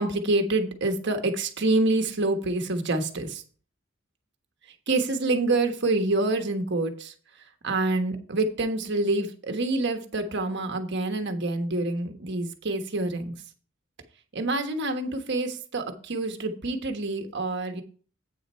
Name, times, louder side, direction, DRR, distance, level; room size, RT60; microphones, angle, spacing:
voice 1, 0.0-3.4 4.9-7.1 7.6-13.3 14.3-17.8, right 2 dB, 60° right, 6 dB, 1.3 m, -27 dB
8.7 x 6.5 x 4.4 m, 0.41 s
head